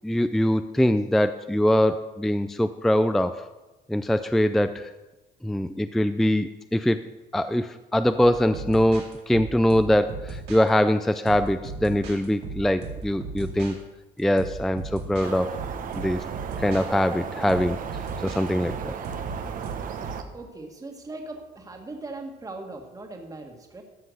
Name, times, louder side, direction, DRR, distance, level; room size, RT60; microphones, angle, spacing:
voice 1, 0.0-3.5 3.9-4.9 5.4-7.1 7.3-13.8 14.2-15.6 15.9-16.2 16.6-17.8 18.2-18.9, equal, ahead, 10 dB, 0.4 m, -23 dB
sound 1, 8.2-10.7 11.3-13.7 14.2-16.8 17.5-20.2, right 4 dB, 90° right, 2.3 m, -37 dB
sound 2, 15.2-20.2, right 7 dB, 55° right, 1.0 m, -35 dB
voice 2, 20.3-23.8, right 2 dB, 20° right, 3 dB, 1.7 m, -39 dB
13.5 x 5.6 x 6.5 m, 1.1 s
cardioid pair, 110°, 17 cm